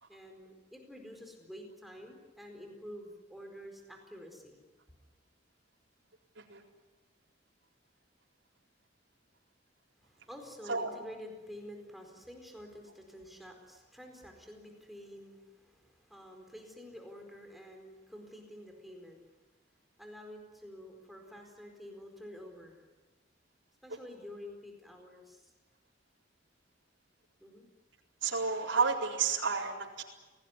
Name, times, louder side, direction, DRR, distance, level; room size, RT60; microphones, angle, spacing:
voice 1, 0.1-4.6 10.0-19.2 20.0-22.8 23.8-25.5 27.4-27.7, equal, ahead, 3 dB, 4.5 m, -49 dB
voice 2, 28.2-30.0, right 5 dB, 85° right, -2 dB, 4.3 m, -31 dB
29.0 x 18.5 x 9.8 m, 1.2 s
head